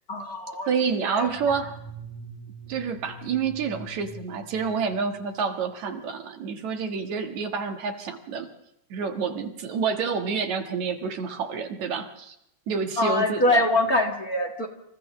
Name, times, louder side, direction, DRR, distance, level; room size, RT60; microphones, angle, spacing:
voice 1, 0.1-0.7 1.0-1.7 13.0-14.7, left 1 dB, 35° left, 2 dB, 2.1 m, -24 dB
voice 2, 0.7-1.7 2.7-8.5 8.9-12.4 12.7-13.6, right 6 dB, 70° right, 6 dB, 2.9 m, -28 dB
sound 1, 1.2-5.3, right 2 dB, 10° left, 2.4 m, -44 dB
29.5 x 27.5 x 3.2 m, 0.80 s
omnidirectional pair, 3.4 m